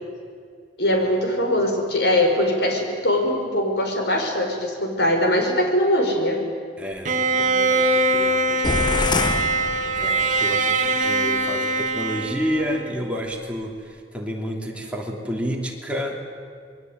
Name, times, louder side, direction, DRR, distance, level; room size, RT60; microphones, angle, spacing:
voice 1, 0.8-6.4, left 1 dB, 65° left, 3 dB, 5.1 m, -21 dB
voice 2, 6.8-9.3 9.9-16.2, equal, 5° right, -1 dB, 3.1 m, -30 dB
Bowed string instrument, 7.0-13.1, right 2 dB, 45° right, 1.5 m, -22 dB
sound 1, 8.6-10.5, left 3 dB, 25° left, 0.6 m, -26 dB
26.5 x 21.5 x 9.5 m, 2.1 s
head